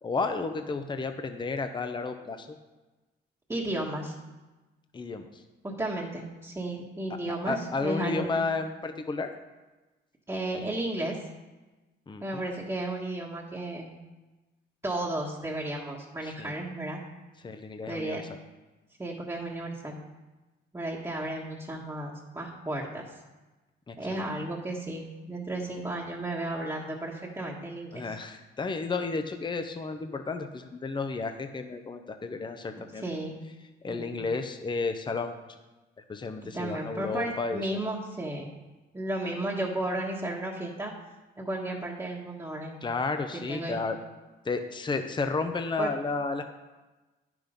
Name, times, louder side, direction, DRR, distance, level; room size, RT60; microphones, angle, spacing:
voice 1, 0.0-2.5 4.9-5.3 7.4-9.3 12.1-12.4 16.4-16.5 17.4-18.2 23.9-24.3 27.9-33.0 33.8-35.4 36.1-37.8 42.8-44.0 44.5-46.4, left 4 dB, 25° left, 7 dB, 0.7 m, -32 dB
voice 2, 3.5-4.1 5.6-8.3 10.3-11.2 12.2-13.9 14.8-17.0 17.9-18.2 19.0-20.0 20.7-23.0 24.0-28.1 32.9-33.4 33.9-34.2 36.5-38.5 38.9-40.9 41.4-42.8 43.5-43.9 45.8-45.9, right 1 dB, 15° right, -5 dB, 1.4 m, -33 dB
9.8 x 6.1 x 5.2 m, 1.2 s
cardioid pair, 90°, 20 cm